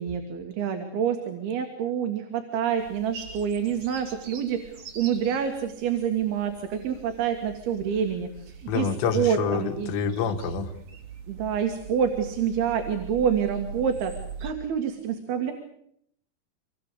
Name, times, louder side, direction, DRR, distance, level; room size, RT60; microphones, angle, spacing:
voice 1, 0.0-8.9 9.1-9.9 11.3-14.1 14.4-15.5, right 8 dB, 65° right, 6 dB, 3.5 m, -27 dB
sound 1, 2.8-14.5, right 5 dB, 40° right, 3.1 m, -43 dB
voice 2, 8.7-10.7, left 6 dB, 75° left, 6 dB, 4.0 m, -27 dB
25.5 x 20.5 x 8.4 m, 0.72 s
omnidirectional pair, 5.1 m